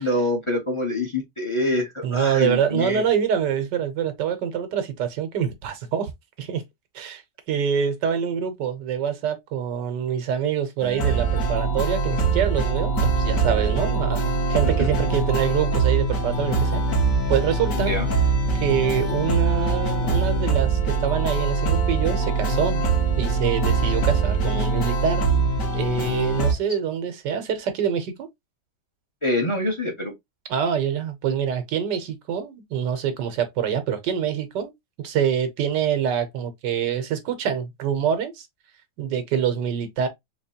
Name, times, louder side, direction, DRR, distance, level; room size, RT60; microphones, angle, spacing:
voice 1, 0.0-3.0 14.8-14.9 17.8-18.1 29.2-30.1, left 1 dB, 25° left, 0.7 m, -25 dB
voice 2, 2.0-6.1 6.4-6.6 6.9-7.2 7.5-16.8 17.3-18.0 18.5-22.8 23.2-25.3 25.7-28.3 30.5-34.7 35.0-38.4 39.0-40.1, right 8 dB, 85° right, 1.5 m, -25 dB
sound 1, 10.8-26.5, right 4 dB, 50° left, 1.5 m, -23 dB
4.1 x 3.0 x 2.8 m
omnidirectional pair, 1.8 m